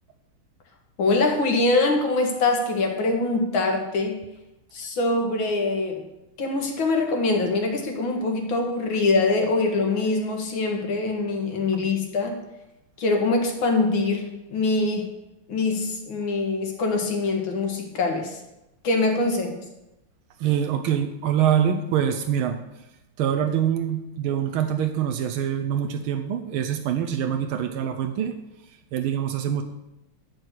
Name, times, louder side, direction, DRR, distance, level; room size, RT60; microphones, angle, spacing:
voice 1, 1.0-4.2 4.7-6.0 6.4-12.4 13.0-15.1 15.5-18.4 18.8-19.6, left 3 dB, 70° left, 2 dB, 2.4 m, -23 dB
voice 2, 20.4-22.6 23.2-28.3 28.9-29.6, right 9 dB, 85° right, 6 dB, 1.6 m, -24 dB
11.0 x 4.7 x 8.1 m, 0.93 s
omnidirectional pair, 2.3 m